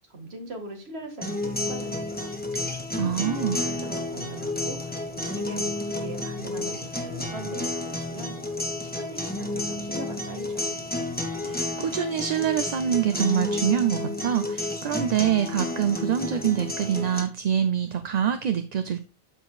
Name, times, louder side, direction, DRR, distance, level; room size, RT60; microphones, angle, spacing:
voice 1, 0.1-2.3 3.1-8.4 8.8-10.8, right 1 dB, 85° right, 4 dB, 2.1 m, -40 dB
sound 1, 1.2-17.2, left 1 dB, 10° left, 1.3 m, -31 dB
sound 2, 1.4-11.9, left 6 dB, 5° right, 1.7 m, -43 dB
voice 2, 3.0-3.6 11.4-19.0, right 9 dB, 50° right, 9 dB, 0.6 m, -25 dB
13.0 x 5.0 x 2.3 m, 0.30 s
omnidirectional pair, 1.0 m